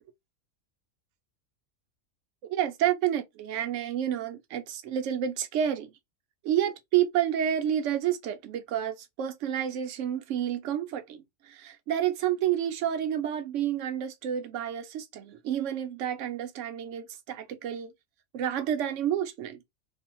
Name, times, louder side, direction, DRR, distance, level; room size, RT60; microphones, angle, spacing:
voice 1, 2.5-5.9 6.4-17.9 18.3-19.6, right 10 dB, 70° right, 0.9 m, -29 dB
2.6 x 2.0 x 2.9 m
omnidirectional pair, 1.4 m